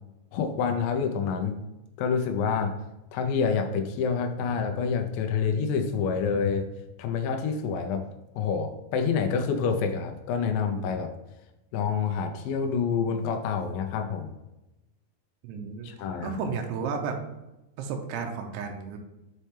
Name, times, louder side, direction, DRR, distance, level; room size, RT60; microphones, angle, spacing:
voice 1, 0.3-1.6 2.0-2.8 3.1-6.7 7.0-8.1 8.4-11.1 11.7-14.3 15.8-16.4, left 6 dB, 85° left, 5 dB, 2.0 m, -27 dB
voice 2, 15.4-15.9 16.2-17.2 17.8-19.0, right 5 dB, 80° right, 3 dB, 2.7 m, -32 dB
6.7 x 4.3 x 3.3 m, 0.97 s
omnidirectional pair, 4.9 m